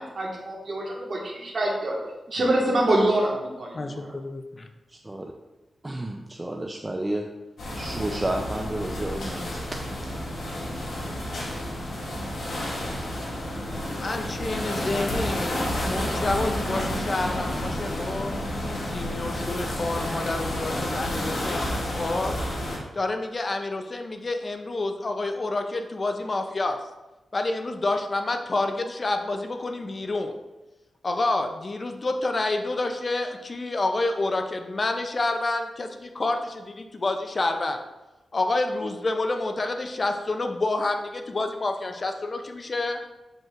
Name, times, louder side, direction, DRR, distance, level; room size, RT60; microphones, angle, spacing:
voice 1, 0.0-2.0 2.3-4.1, right 1 dB, 55° right, -3 dB, 1.6 m, -25 dB
voice 2, 3.7-4.7 14.0-18.3 18.6-22.3 22.9-26.8 27.3-30.3 31.0-37.8 38.3-43.0, left 2 dB, 40° left, 5 dB, 0.5 m, -28 dB
voice 3, 4.9-5.3 5.8-7.3 7.7-9.7 10.0-10.1, right 1 dB, 20° right, 2 dB, 0.4 m, -31 dB
sound 1, 7.6-22.8, left 1 dB, 80° left, 2.1 m, -30 dB
7.5 x 5.2 x 2.5 m, 1.0 s
wide cardioid pair, 90°, 0 cm